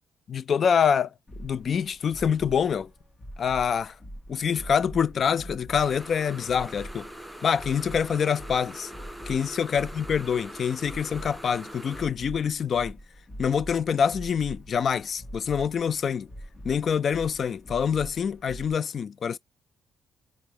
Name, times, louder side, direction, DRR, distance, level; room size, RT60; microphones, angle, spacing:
voice 1, 0.3-1.1 1.4-2.9 3.4-3.9 4.3-7.1 7.4-8.9 9.3-13.0 13.4-16.3 16.6-19.4, left 7 dB, 50° left, 0.3 m, -26 dB
sound 1, 1.3-18.7, equal, 25° left, 1.0 m, -44 dB
sound 2, 5.8-12.1, right 1 dB, ahead, 0.6 m, -43 dB
4.6 x 2.1 x 3.3 m
cardioid pair, 90°, 0 cm